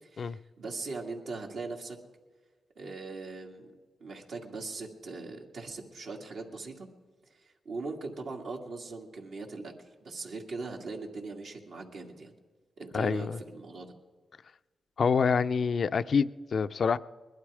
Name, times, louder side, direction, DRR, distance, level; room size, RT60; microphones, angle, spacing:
voice 1, 0.0-2.0 2.8-3.7 4.0-6.9 7.4-9.7 10.0-12.3 12.8-13.9, right 3 dB, 75° right, 2.1 m, -40 dB
voice 2, 12.9-13.4 15.0-17.0, left 5 dB, 60° left, 0.4 m, -26 dB
20.5 x 12.0 x 4.9 m
cardioid pair, 60°, 0 cm